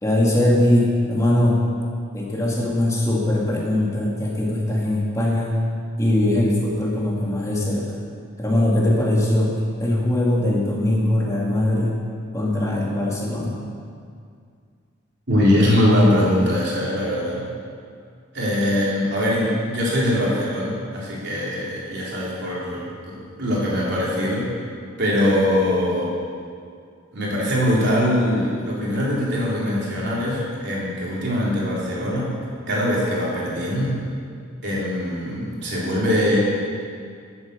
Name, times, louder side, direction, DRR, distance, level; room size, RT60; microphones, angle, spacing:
voice 1, 0.0-1.6 2.1-5.6 6.0-8.0 8.4-9.5 9.8-12.0 12.3-13.6, left 1 dB, 15° left, -4 dB, 2.3 m, -21 dB
voice 2, 15.3-17.4 18.3-24.5 25.0-26.1 27.1-32.3 32.7-34.0 34.6-36.4, left 1 dB, 55° right, -6 dB, 3.8 m, -22 dB
12.5 x 8.9 x 7.0 m, 2.2 s
head